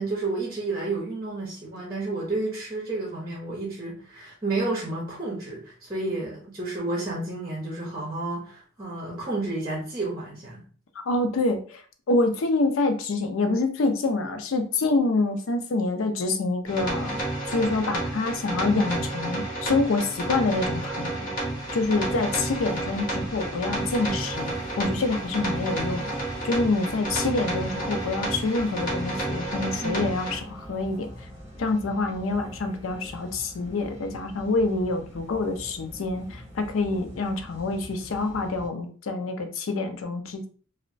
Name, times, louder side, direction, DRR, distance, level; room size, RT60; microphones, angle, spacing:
voice 1, 0.0-10.6 29.8-30.1, right 2 dB, 20° right, -3 dB, 0.7 m, -31 dB
voice 2, 11.1-11.8 12.1-17.2 17.5-26.1 26.4-31.1 31.6-40.5, left 3 dB, 85° left, 7 dB, 0.5 m, -26 dB
sound 1, 16.7-30.4, right 1 dB, 45° left, 1.0 m, -31 dB
sound 2, 21.4-38.7, equal, 20° left, 1.4 m, -44 dB
2.9 x 2.1 x 2.5 m, 0.41 s
head